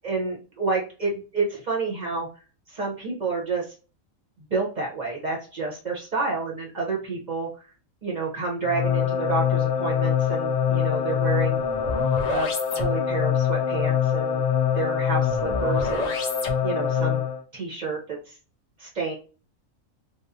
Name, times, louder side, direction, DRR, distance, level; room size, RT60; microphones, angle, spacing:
voice 1, 0.0-2.3 2.7-3.7 4.4-7.5 8.0-11.6 12.3-14.4 14.7-16.1 16.6-17.2 17.5-18.4 18.8-19.1, right 4 dB, 40° right, -1 dB, 0.8 m, -29 dB
sound 1, 8.6-17.4, left 7 dB, 80° left, 0.3 m, -24 dB
3.0 x 2.0 x 2.6 m, 0.35 s
omnidirectional pair, 1.4 m